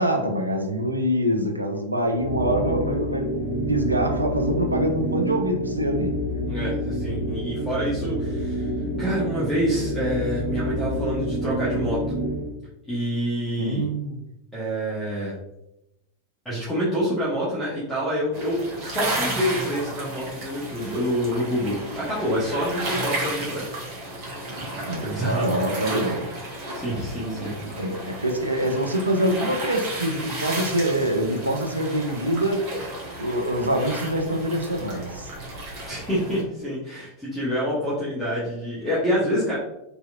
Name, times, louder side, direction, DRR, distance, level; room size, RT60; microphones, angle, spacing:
voice 1, 0.0-3.3 3.7-6.2 13.6-14.2 24.8-26.4 27.3-32.7 33.2-35.3, right 1 dB, 80° right, 3 dB, 0.4 m, -25 dB
sound 1, 2.1-12.5, equal, 55° left, 0.7 m, -28 dB
voice 2, 6.5-8.7 9.0-12.0 12.9-13.8 14.5-15.3 16.4-23.9 25.0-25.5 26.7-27.7 35.9-39.6, equal, 5° left, -9 dB, 0.8 m, -27 dB
sound 2, 18.3-36.4, right 1 dB, 45° right, 0.9 m, -33 dB
2.8 x 2.5 x 2.3 m, 0.88 s
figure-of-eight pair, 90°, 0 cm